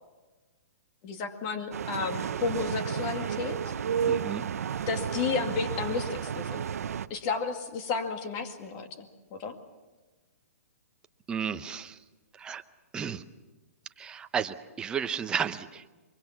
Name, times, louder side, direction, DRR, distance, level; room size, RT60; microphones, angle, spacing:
voice 1, 1.0-3.7 4.9-6.7 7.1-9.6, left 5 dB, 30° left, 6 dB, 2.2 m, -32 dB
sound 1, 1.7-7.1, right 8 dB, 70° right, 0.8 m, -32 dB
voice 2, 4.1-4.4 11.3-12.0 12.4-12.6 12.9-13.2 14.0-15.9, right 7 dB, 10° right, 8 dB, 0.7 m, -33 dB
23.5 x 23.0 x 7.3 m, 1.2 s
hypercardioid pair, 160°, 8 cm